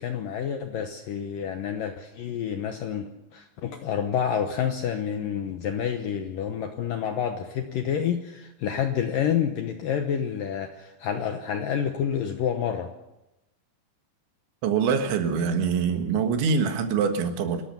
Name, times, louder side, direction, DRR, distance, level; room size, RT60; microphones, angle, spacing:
voice 1, 0.0-12.9, left 8 dB, 75° left, 6 dB, 2.1 m, -28 dB
voice 2, 14.6-17.6, right 6 dB, 80° right, 6 dB, 4.0 m, -24 dB
27.5 x 13.5 x 6.9 m, 0.95 s
omnidirectional pair, 5.2 m